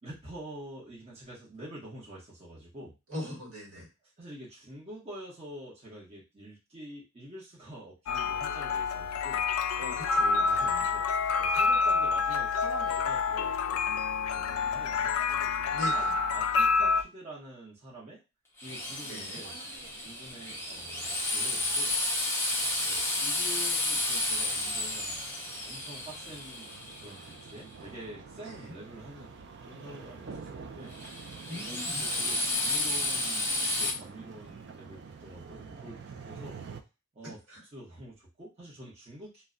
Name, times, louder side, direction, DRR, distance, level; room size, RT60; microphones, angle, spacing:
voice 1, 0.0-2.9 3.7-3.8 4.2-9.4 10.5-16.1 16.3-18.2 18.6-19.5 20.0-21.9 22.8-25.2 25.6-26.7 27.0-29.4 29.7-30.9 31.6-36.6 37.1-37.4 37.7-39.4, right 1 dB, 30° right, -7 dB, 0.8 m, -47 dB
voice 2, 3.1-3.9 9.8-10.9 15.7-16.1 19.0-19.4 28.4-28.7 31.5-32.1 37.2-37.6, equal, 70° right, -1 dB, 1.3 m, -41 dB
sound 1, 8.1-17.0, left 4 dB, 75° left, 0.3 m, -28 dB
Drill, 18.6-27.5 30.9-33.9, left 2 dB, 10° left, 0.4 m, -32 dB
sound 2, 18.6-36.8, right 5 dB, 50° right, 0.3 m, -48 dB
2.1 x 2.1 x 3.6 m, 0.27 s
head